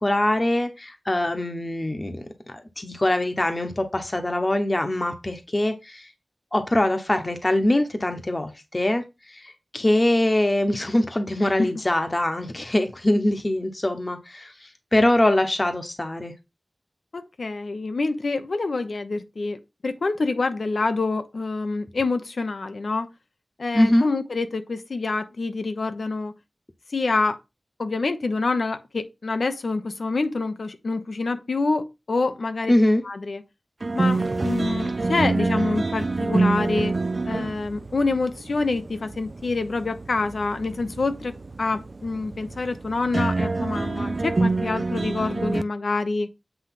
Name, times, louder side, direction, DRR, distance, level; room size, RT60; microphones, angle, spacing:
voice 1, 0.0-2.3 2.5-6.1 6.5-16.3 23.7-24.1 32.7-33.0, left 1 dB, 35° left, 1.1 m, -23 dB
voice 2, 17.1-23.1 23.6-26.3 26.9-27.4 27.8-32.7 33.0-33.4 33.9-36.9 37.3-46.3, left 3 dB, 85° left, 0.9 m, -26 dB
sound 1, 33.8-45.6, right 3 dB, 55° right, 0.5 m, -27 dB
8.0 x 3.2 x 5.9 m
wide cardioid pair, 60°, 0 cm